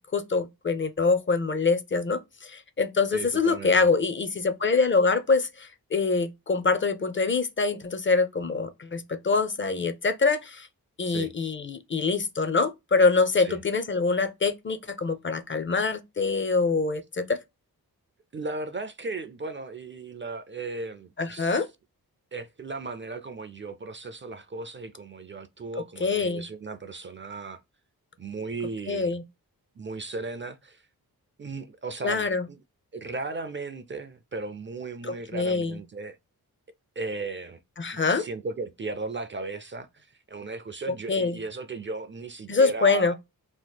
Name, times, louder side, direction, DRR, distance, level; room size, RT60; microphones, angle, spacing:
voice 1, 0.1-10.7 11.0-17.4 21.2-21.7 26.0-26.4 28.9-29.2 32.0-32.4 35.3-35.8 37.8-38.2 41.1-41.4 42.5-43.2, left 4 dB, 30° left, 0.5 m, -25 dB
voice 2, 3.1-3.9 11.1-11.3 13.4-13.6 18.3-21.7 22.3-27.6 28.2-29.2 29.8-30.8 31.4-32.6 32.9-36.2 37.0-37.6 38.1-43.1, right 3 dB, 30° right, 0.4 m, -36 dB
2.9 x 2.1 x 3.3 m
cardioid pair, 70°, 38 cm